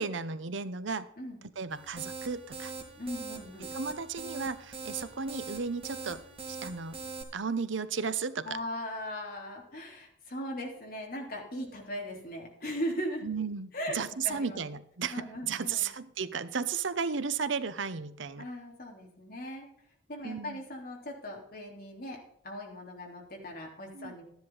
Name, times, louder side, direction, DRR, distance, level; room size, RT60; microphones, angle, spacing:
voice 1, 0.0-1.1 1.6-2.7 3.7-6.2 6.5-7.0 7.3-8.6 13.2-18.5 20.2-20.6 23.9-24.1, right 5 dB, 75° right, 14 dB, 0.8 m, -34 dB
sound 1, 1.7-7.2, right 4 dB, 30° right, 2.0 m, -42 dB
voice 2, 3.0-3.7 8.4-13.3 13.7-14.6 15.1-15.9 18.4-19.7 20.1-24.2, equal, 50° left, 0 dB, 3.4 m, -39 dB
13.5 x 10.5 x 4.0 m, 0.74 s
head